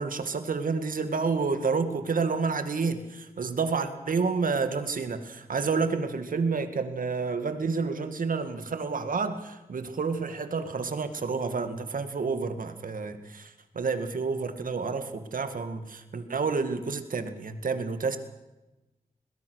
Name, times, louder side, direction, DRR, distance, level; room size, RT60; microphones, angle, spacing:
voice 1, 0.0-18.2, right 4 dB, 75° right, 9 dB, 2.0 m, -29 dB
22.0 x 19.0 x 6.5 m, 1.0 s
wide cardioid pair, 80°, 14 cm